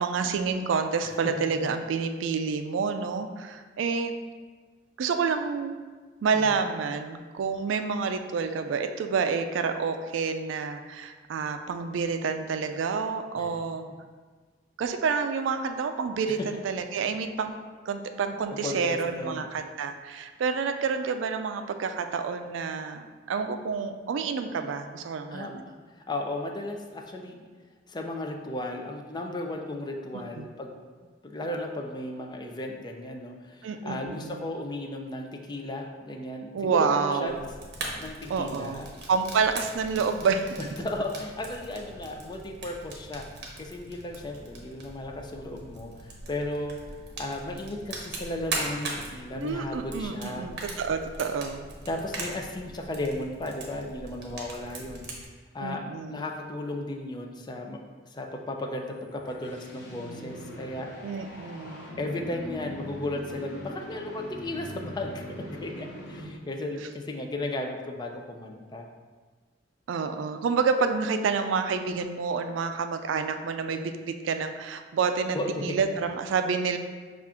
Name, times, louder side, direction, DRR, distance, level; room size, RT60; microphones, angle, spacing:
voice 1, 0.0-4.1 5.0-5.8 6.2-13.9 14.8-17.5 17.9-25.6 30.1-30.5 33.6-34.4 36.5-37.5 38.3-38.8 39.1-40.5 49.4-51.7 55.6-56.2 61.0-61.9 69.9-73.9 74.2-76.8, right 5 dB, 90° right, 7 dB, 0.3 m, -28 dB
voice 2, 18.6-19.5 25.3-27.4 27.9-30.7 31.2-37.3 38.0-38.9 40.8-43.3 43.6-46.8 47.2-50.5 51.9-55.3 55.5-57.8 58.0-60.9 62.0-68.9 75.3-75.8, left 1 dB, 25° left, 2 dB, 0.4 m, -35 dB
Fire, 37.3-55.2, right 2 dB, 60° right, 0.8 m, -40 dB
sound 1, 58.8-66.6, equal, 65° left, 0.9 m, -42 dB
5.6 x 2.4 x 3.5 m, 1.4 s
head